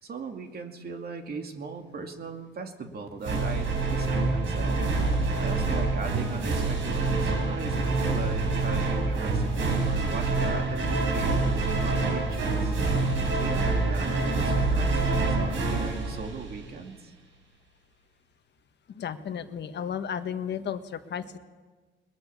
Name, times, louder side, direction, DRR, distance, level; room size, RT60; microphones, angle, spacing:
voice 1, 0.0-4.8 5.4-12.7 13.4-17.1, right 4 dB, 50° right, 4 dB, 2.5 m, -38 dB
sound 1, 3.2-16.9, right 3 dB, 80° right, 4.6 m, -26 dB
voice 2, 18.9-21.4, left 8 dB, 60° left, 9 dB, 1.4 m, -33 dB
22.0 x 20.0 x 7.1 m, 1.4 s
cardioid pair, 90°, 20 cm